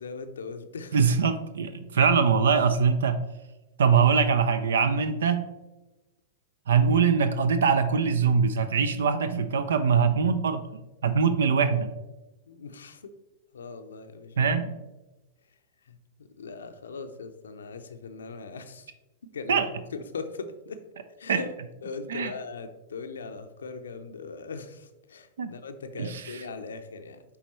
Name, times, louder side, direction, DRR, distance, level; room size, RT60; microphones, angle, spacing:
voice 1, 0.0-1.0 12.5-13.1 13.5-14.6 15.9-18.9 19.3-19.6 19.9-20.8 21.2-21.5 21.8-27.2, left 4 dB, 75° left, 8 dB, 0.5 m, -40 dB
voice 2, 0.9-3.2 3.8-5.5 6.7-10.7 11.0-12.0 14.4-14.7 19.5-19.7 21.3-21.4 22.1-22.3 25.4-25.5 26.0-26.2, right 6 dB, 70° right, 11 dB, 0.4 m, -23 dB
9.3 x 3.4 x 3.1 m, 1.0 s
figure-of-eight pair, 100°, 0 cm